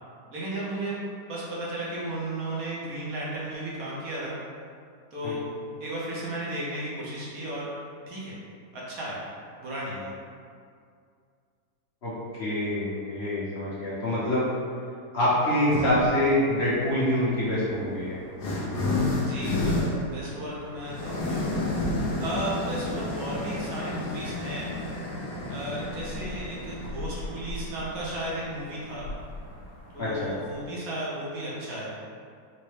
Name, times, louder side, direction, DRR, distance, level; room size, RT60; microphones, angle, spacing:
voice 1, 0.3-1.0 1.3-4.4 5.1-5.4 5.8-7.7 8.1-8.3 8.7-9.2 9.6-10.1 19.1-21.4 22.2-24.7 25.5-29.1 29.9-31.9, right 1 dB, 65° right, -6 dB, 1.1 m, -34 dB
voice 2, 12.4-14.5 15.1-18.2 30.0-30.3, left 1 dB, 45° left, -10 dB, 0.9 m, -25 dB
sound 1, 15.7-16.2 17.1-30.6, left 2 dB, 80° left, 1.3 m, -31 dB
4.0 x 2.2 x 3.2 m, 2.3 s
omnidirectional pair, 1.8 m